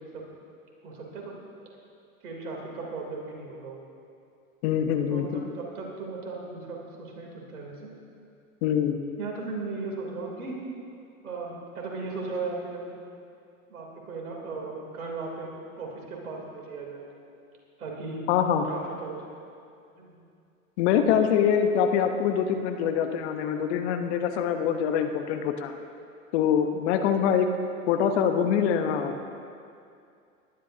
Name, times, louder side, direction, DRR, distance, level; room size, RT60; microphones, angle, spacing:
voice 1, 0.8-1.3 2.2-3.8 5.1-7.9 9.2-10.6 11.2-12.9 13.7-15.5 15.8-17.1 17.8-18.2 18.7-19.4 20.0-20.1, right 3 dB, 80° right, -1 dB, 3.4 m, -37 dB
voice 2, 4.6-5.4 8.6-9.0 18.3-18.6 20.8-25.7 26.3-27.5 27.9-29.1, left 8 dB, 50° left, 7 dB, 1.0 m, -24 dB
19.5 x 11.5 x 2.8 m, 2.4 s
hypercardioid pair, 105°, 44 cm